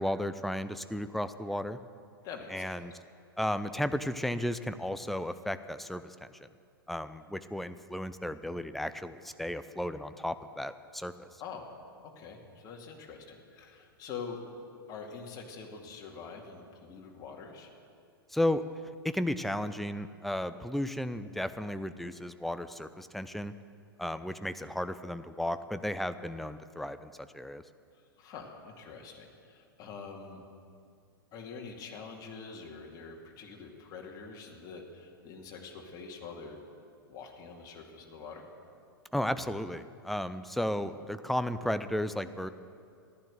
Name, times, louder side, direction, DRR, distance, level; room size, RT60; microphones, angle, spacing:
voice 1, 0.0-1.8 2.5-2.9 3.4-6.5 6.9-11.3 18.3-18.6 19.0-23.5 24.0-27.6 39.1-42.5, left 1 dB, ahead, 11 dB, 0.5 m, -34 dB
voice 2, 2.2-2.7 11.4-11.7 12.0-14.4 14.9-17.7 28.2-30.4 31.3-36.6 37.1-38.4, left 5 dB, 30° left, 1 dB, 2.4 m, -45 dB
14.5 x 12.0 x 7.9 m, 2.3 s
figure-of-eight pair, 100°, 12 cm